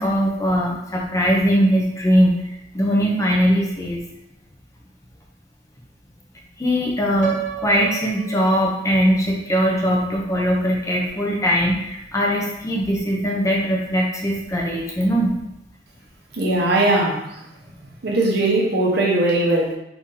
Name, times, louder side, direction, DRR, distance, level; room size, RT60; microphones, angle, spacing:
voice 1, 0.0-2.4 2.7-4.0 6.6-15.3, equal, 15° left, -2 dB, 0.5 m, -20 dB
Piano, 7.2-9.2, right 11 dB, 45° right, 0.3 m, -32 dB
voice 2, 16.3-17.2 18.0-19.7, right 2 dB, 60° right, -3 dB, 0.8 m, -19 dB
2.9 x 2.7 x 3.7 m, 0.83 s
head